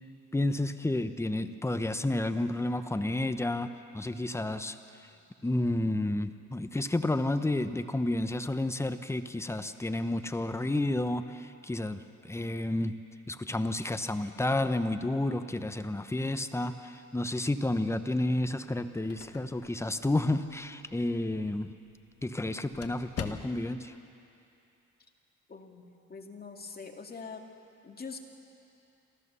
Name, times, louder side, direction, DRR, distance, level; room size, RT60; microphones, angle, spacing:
voice 1, 0.3-4.8 5.4-13.0 13.3-21.7 22.2-23.9, left 1 dB, 10° left, 10 dB, 0.9 m, -31 dB
sound 1, 18.7-23.9, left 7 dB, 55° left, 1.3 m, -46 dB
voice 2, 25.5-27.4 27.8-28.2, left 5 dB, 30° left, 2 dB, 2.2 m, -44 dB
27.5 x 13.5 x 7.0 m, 2.7 s
cardioid pair, 90°, 30 cm